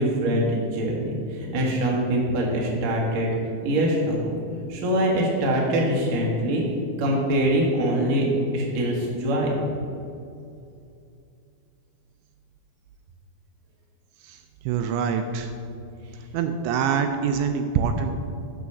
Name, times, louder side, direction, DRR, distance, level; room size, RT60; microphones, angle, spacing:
voice 1, 0.0-3.3 3.6-4.3 4.7-6.6 7.0-8.3 8.5-9.6, right 1 dB, 60° right, -2 dB, 1.9 m, -23 dB
voice 2, 14.7-15.5 16.3-18.1, right 7 dB, 85° right, 6 dB, 2.7 m, -25 dB
6.5 x 6.2 x 6.9 m, 2.5 s
omnidirectional pair, 5.3 m